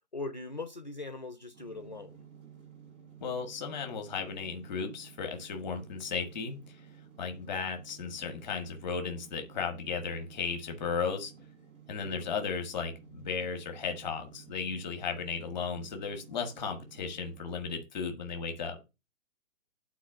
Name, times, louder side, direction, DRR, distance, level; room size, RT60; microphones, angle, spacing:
voice 1, 0.1-2.2 12.0-12.4, left 3 dB, 35° left, 0.4 m, -41 dB
sound 1, 1.5-17.4, right 8 dB, 55° right, 7.0 m, -54 dB
voice 2, 3.2-6.6 7.2-11.3 11.9-18.8, left 5 dB, ahead, 0.7 m, -35 dB
9.3 x 4.2 x 7.1 m
hypercardioid pair, 175°, 42 cm